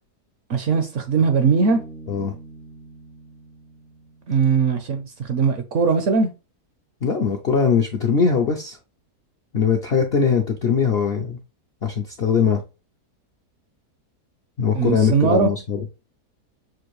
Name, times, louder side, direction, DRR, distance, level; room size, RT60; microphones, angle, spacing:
voice 1, 0.5-1.8 4.3-6.3 14.7-15.5, right 5 dB, 65° right, 0.8 m, -20 dB
Bass guitar, 1.6-5.1, right 2 dB, 80° right, 2.0 m, -44 dB
voice 2, 7.0-8.8 9.5-11.4 11.8-12.6 14.6-15.8, left 6 dB, 65° left, 0.6 m, -21 dB
6.2 x 2.5 x 3.0 m
omnidirectional pair, 1.7 m